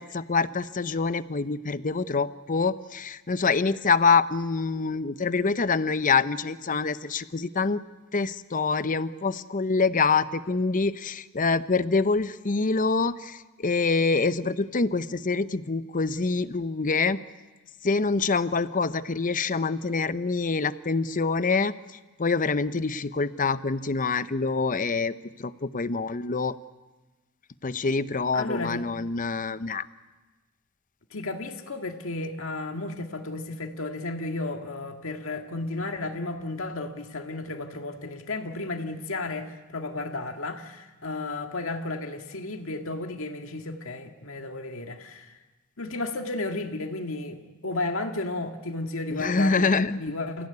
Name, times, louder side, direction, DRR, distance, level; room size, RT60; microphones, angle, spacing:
voice 1, 0.0-7.8 8.1-17.2 17.8-21.7 22.2-25.1 25.4-26.6 27.6-29.9 49.1-50.0, left 4 dB, 40° left, 14 dB, 0.8 m, -25 dB
voice 2, 28.3-28.8 31.1-45.4 45.8-50.5, left 2 dB, 70° left, 4 dB, 1.9 m, -33 dB
30.0 x 16.5 x 9.7 m, 1.2 s
head